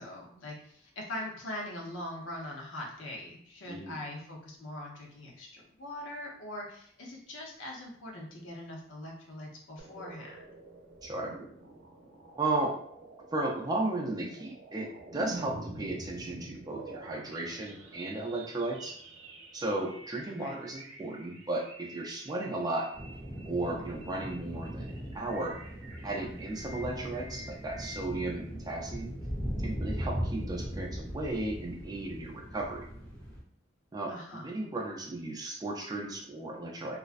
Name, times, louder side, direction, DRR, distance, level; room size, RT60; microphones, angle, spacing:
voice 1, 0.0-10.3 20.4-20.6 34.1-34.5, left 1 dB, 75° left, -1 dB, 0.7 m, -42 dB
voice 2, 3.7-4.0 11.0-11.3 12.4-12.7 13.3-18.9 19.5-22.9 23.5-25.6 26.0-29.1 29.6-32.9 33.9-37.0, right 2 dB, 20° right, -1 dB, 0.4 m, -35 dB
sound 1, 9.8-28.0, right 2 dB, 80° right, 0.6 m, -48 dB
sound 2, 22.9-33.4, equal, 5° left, 0.7 m, -39 dB
2.4 x 2.1 x 2.4 m, 0.62 s
head